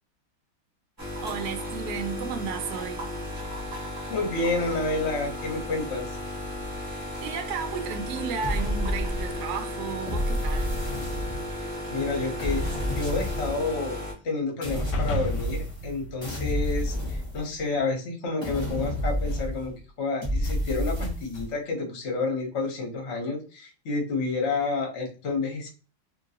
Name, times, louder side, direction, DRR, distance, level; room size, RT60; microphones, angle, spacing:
sound 1, 1.0-14.1, left 1 dB, 15° right, 0.7 m, -35 dB
voice 1, 1.2-3.1 6.8-10.8, right 6 dB, 75° right, 0.9 m, -34 dB
voice 2, 3.8-6.2 11.5-14.0 14.2-25.7, left 3 dB, 50° left, 0.8 m, -30 dB
sound 2, 8.4-9.5 10.1-11.7 12.4-13.7 14.6-15.9 16.2-17.8 18.4-19.8 20.2-21.5, equal, 20° left, 0.9 m, -30 dB
sound 3, 14.9-17.4, equal, 70° left, 1.1 m, -34 dB
2.9 x 2.7 x 2.7 m
omnidirectional pair, 2.2 m